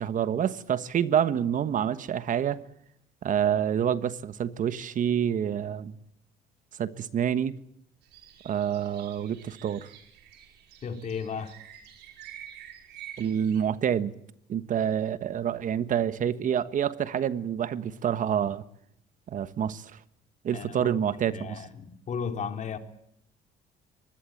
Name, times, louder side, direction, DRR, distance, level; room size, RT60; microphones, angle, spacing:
voice 1, 0.0-2.6 3.2-6.0 6.8-7.5 8.4-9.9 13.2-14.1 14.5-18.6 19.3-20.0 20.4-21.6, right 9 dB, 50° right, 1.3 m, -27 dB
sound 1, 8.0-13.6, right 10 dB, 80° right, 5.1 m, -48 dB
voice 2, 10.8-11.5 20.5-22.8, left 6 dB, 45° left, 3.4 m, -35 dB
24.0 x 20.5 x 9.1 m
cardioid pair, 110°, 17 cm